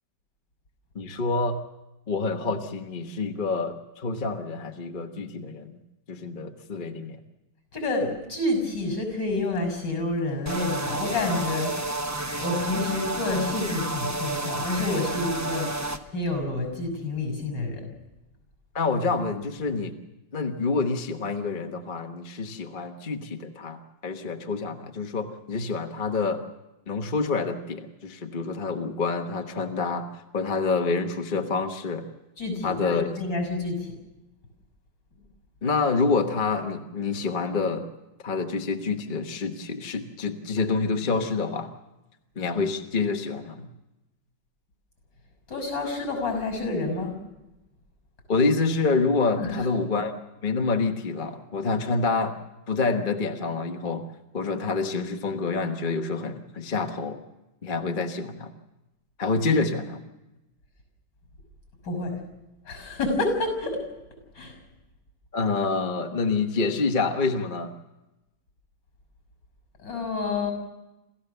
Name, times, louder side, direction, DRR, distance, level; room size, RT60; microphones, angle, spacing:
voice 1, 0.9-1.6 2.1-5.8 6.1-7.2 18.7-19.9 20.3-26.4 26.9-30.1 30.3-32.1 32.6-33.1 35.6-37.9 38.2-41.7 42.4-43.7 48.3-50.1 50.4-52.3 52.7-54.0 54.3-57.2 57.6-58.5 59.2-60.0 65.3-67.7, left 4 dB, 30° left, 4 dB, 1.1 m, -27 dB
voice 2, 7.7-11.9 12.4-15.7 16.1-17.8 32.4-33.8 45.5-47.2 49.4-49.5 61.8-62.2 62.7-63.8 64.4-64.5 69.8-70.5, left 2 dB, 60° left, 6 dB, 6.7 m, -28 dB
sound 1, 10.5-16.0, right 2 dB, 20° right, 0.4 m, -30 dB
27.5 x 15.0 x 6.8 m, 0.98 s
omnidirectional pair, 2.2 m